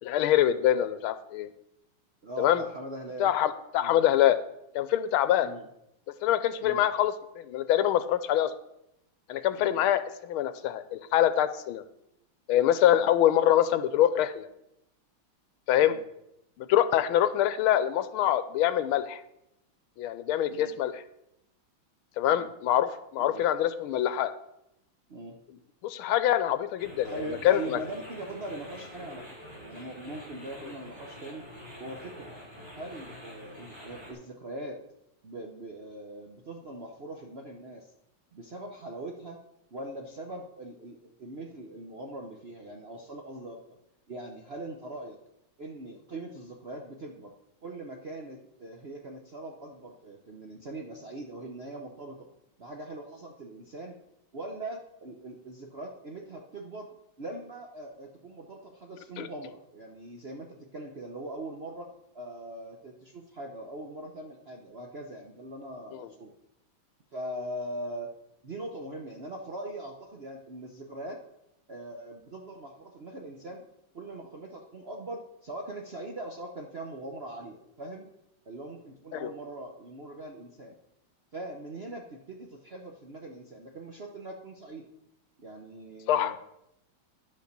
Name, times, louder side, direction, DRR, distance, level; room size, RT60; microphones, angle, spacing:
voice 1, 0.0-1.5 2.4-2.6 3.2-4.4 4.7-5.5 6.2-8.5 9.3-11.8 12.5-14.5 15.7-15.9 16.6-19.2 20.0-21.0 22.2-24.3 25.8-27.8 59.2-59.3 65.9-66.1 79.1-79.3 86.1-86.3, left 11 dB, 85° left, 12 dB, 1.5 m, -25 dB
voice 2, 2.2-3.3 3.8-4.0 5.4-5.7 6.6-6.9 9.5-9.8 12.9-13.1 15.8-16.0 20.5-20.7 22.3-22.5 23.2-23.4 25.1-25.4 27.0-31.5 31.8-32.3 32.7-34.8 35.2-37.9 38.3-39.4 39.7-43.8 44.1-45.2 45.6-47.3 47.6-52.3 52.6-54.0 54.3-56.9 57.2-61.9 62.1-66.3 67.1-68.1 68.4-71.2 71.7-73.7 73.9-78.1 78.5-80.7 81.3-84.8 85.4-86.4, right 1 dB, 50° right, 1 dB, 0.7 m, -41 dB
sound 1, 26.8-34.1, equal, 10° right, 3.6 m, -46 dB
10.5 x 5.4 x 6.6 m, 0.83 s
omnidirectional pair, 2.3 m